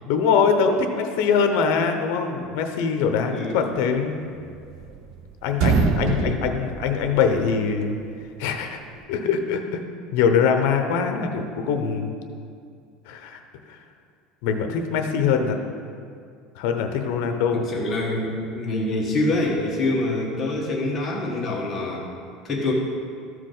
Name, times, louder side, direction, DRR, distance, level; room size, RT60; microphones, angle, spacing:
voice 1, 0.0-4.2 5.4-8.0 8.4-8.8 9.1-9.8 10.1-12.2 13.1-13.4 13.7-13.8 14.4-15.6 16.6-17.7, left 6 dB, 65° left, 5 dB, 0.8 m, -23 dB
sound 1, 4.4-5.2 5.5-7.6, right 5 dB, 50° right, 0.6 m, -24 dB
voice 2, 17.7-22.0 22.4-22.7, left 2 dB, 20° left, -4 dB, 1.4 m, -25 dB
13.5 x 4.8 x 3.9 m, 2.3 s
cardioid pair, 170°, 0 cm